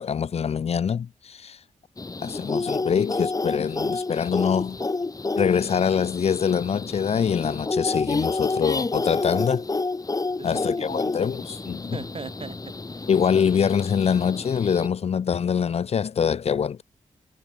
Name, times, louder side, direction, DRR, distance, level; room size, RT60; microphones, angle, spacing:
voice 1, 0.0-1.6 2.2-4.8 5.4-9.6 10.4-12.0 13.1-16.8, left 7 dB, 55° left, 0.6 m, -24 dB
sound 1, 2.0-14.9, left 3 dB, 30° left, 1.5 m, -30 dB
voice 2, 10.3-11.3 11.9-13.1, right 4 dB, 45° right, 3.0 m, -40 dB
cardioid pair, 60°, 13 cm